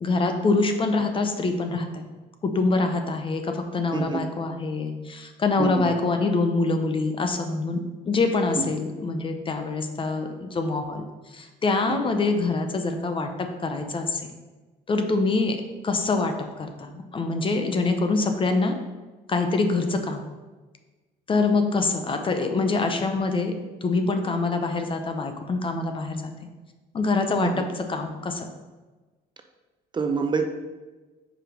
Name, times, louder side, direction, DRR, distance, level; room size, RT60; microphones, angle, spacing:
voice 1, 0.0-2.1 2.4-11.1 11.3-14.2 14.9-15.6 15.8-16.3 16.6-18.7 19.3-20.2 21.3-23.5 23.8-26.3 26.9-27.6 27.9-28.5, left 3 dB, 30° left, 6 dB, 0.7 m, -25 dB
voice 2, 3.9-4.3 5.6-5.9 8.5-8.7 11.9-12.1 27.4-27.7 29.9-30.4, right 5 dB, 25° right, 5 dB, 0.6 m, -27 dB
5.0 x 4.7 x 5.0 m, 1.2 s
cardioid pair, 110°, 17 cm